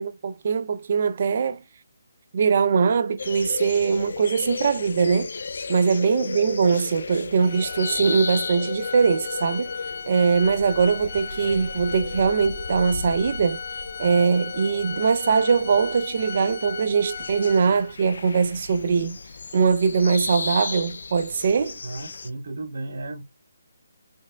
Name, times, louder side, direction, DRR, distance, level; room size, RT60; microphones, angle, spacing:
voice 1, 0.0-1.6 2.3-5.3 5.7-9.7 10.1-13.6 14.0-19.2 19.5-21.8, right 5 dB, 50° right, 0.4 m, -22 dB
sound 1, 3.2-22.3, left 4 dB, 70° left, 0.4 m, -35 dB
Organ, 7.4-18.1, left 6 dB, 40° left, 0.8 m, -36 dB
voice 2, 21.8-23.2, right 2 dB, 70° right, 1.8 m, -34 dB
4.4 x 2.0 x 2.3 m
hypercardioid pair, 160°, 0 cm